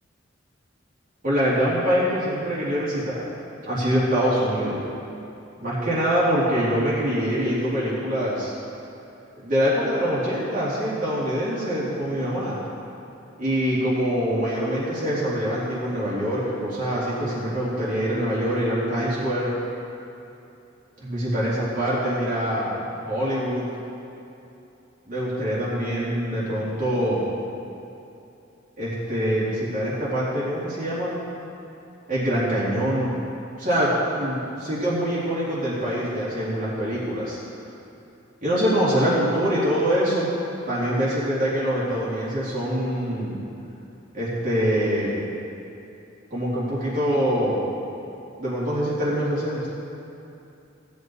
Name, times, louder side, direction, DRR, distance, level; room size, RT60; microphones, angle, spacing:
voice 1, 1.2-3.3 3.6-4.8 5.6-8.5 9.4-12.6 13.4-19.5 21.0-23.7 25.1-27.3 28.8-31.1 32.1-33.1 33.6-33.9 34.2-37.4 38.4-40.3 40.7-43.4 44.1-45.2 46.3-47.6 48.4-49.7, equal, 45° right, -10 dB, 3.2 m, -24 dB
17.0 x 8.3 x 4.7 m, 2.8 s
head